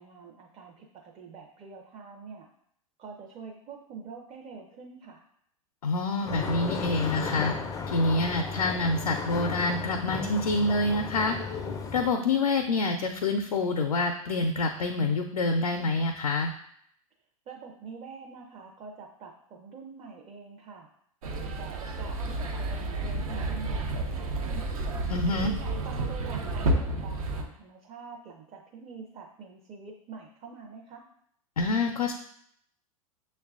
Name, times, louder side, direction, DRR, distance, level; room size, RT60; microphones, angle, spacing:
voice 1, 0.0-2.5 3.0-5.2 17.5-20.9 21.6-24.7 25.4-31.0, right 5 dB, 30° right, 0 dB, 0.5 m, -45 dB
voice 2, 5.8-7.5 7.9-11.4 11.9-16.5 25.1-25.5 31.6-32.1, left 3 dB, 85° left, 3 dB, 0.4 m, -27 dB
sound 1, 6.3-12.1, left 4 dB, 20° left, 0.4 m, -34 dB
sound 2, 21.2-27.4, right 2 dB, 70° right, 0.6 m, -31 dB
6.2 x 2.2 x 2.4 m, 0.68 s
hypercardioid pair, 100°, 19 cm